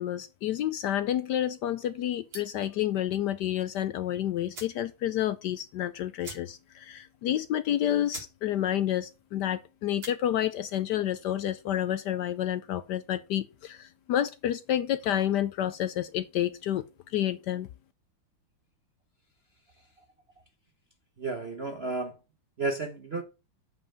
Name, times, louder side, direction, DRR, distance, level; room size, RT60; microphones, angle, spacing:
voice 1, 0.0-16.8 17.1-17.7, left 11 dB, 75° left, 1.0 m, -29 dB
sound 1, 2.3-2.7 4.0-4.1 4.5-4.8 5.2-5.3 5.5-5.7 6.2-6.8 7.1-7.2 7.7-7.8 8.1-8.4 8.7-9.1 9.8-10.2, right 3 dB, 90° right, 4.7 m, -44 dB
voice 2, 21.2-22.2 22.6-23.2, right 3 dB, 45° right, 0.8 m, -32 dB
7.9 x 5.5 x 5.2 m
omnidirectional pair, 2.3 m